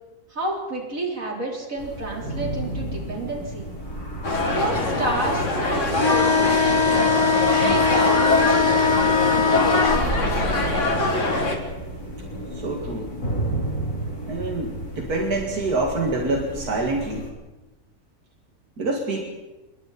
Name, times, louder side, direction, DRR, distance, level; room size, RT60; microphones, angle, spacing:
voice 1, 0.3-3.7 4.5-7.1 7.5-8.7 9.3-10.4, right 2 dB, 60° right, -1 dB, 4.6 m, -30 dB
sound 1, 1.8-17.3, right 1 dB, 85° left, 5.0 m, -32 dB
sound 2, 4.2-11.6, left 2 dB, 55° left, 2.8 m, -23 dB
sound 3, 5.9-10.1, left 5 dB, 20° left, 1.1 m, -20 dB
voice 2, 12.5-13.1 14.3-17.3 18.8-19.3, right 2 dB, 85° right, 1 dB, 2.7 m, -26 dB
27.0 x 22.5 x 4.3 m, 1.1 s
omnidirectional pair, 1.6 m